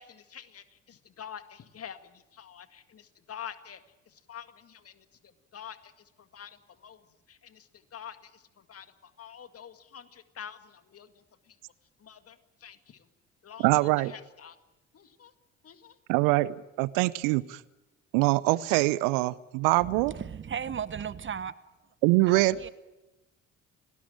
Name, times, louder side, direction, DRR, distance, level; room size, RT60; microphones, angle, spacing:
voice 1, 0.0-11.6 12.0-13.1 13.4-14.6 14.9-15.3 15.6-16.0, left 8 dB, 40° left, 2.1 m, -47 dB
voice 2, 13.6-14.1 16.1-17.6 18.1-20.1 22.0-22.5, right 21 dB, 65° right, 0.8 m, -24 dB
voice 3, 19.8-21.5 22.3-22.7, right 7 dB, 35° right, 1.1 m, -36 dB
29.5 x 18.5 x 9.0 m
figure-of-eight pair, 50°, 36 cm